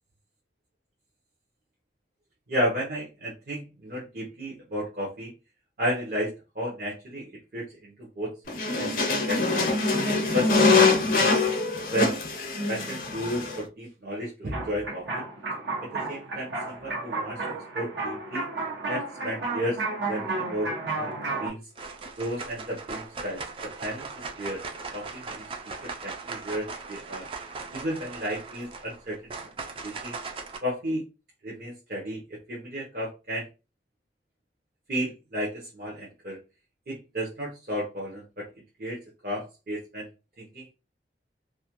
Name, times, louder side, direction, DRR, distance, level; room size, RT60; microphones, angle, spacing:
voice 1, 2.5-5.3 5.8-9.7 10.3-11.3 11.9-12.1 12.7-15.2 15.8-18.5 18.9-21.6 22.2-24.1 24.4-24.6 24.9-27.3 27.7-29.5 29.8-30.2 30.6-31.0 31.4-33.5 34.9-36.4 36.9-38.5 38.8-40.1 40.4-40.7, equal, 55° right, -4 dB, 0.7 m, -33 dB
sound 1, 8.5-13.6, left 3 dB, 50° left, 0.5 m, -23 dB
sound 2, 14.5-21.5, right 3 dB, 85° right, 0.8 m, -32 dB
sound 3, 21.0-21.4 21.7-30.6, right 4 dB, 30° right, 0.3 m, -39 dB
2.4 x 2.2 x 2.9 m, 0.29 s
head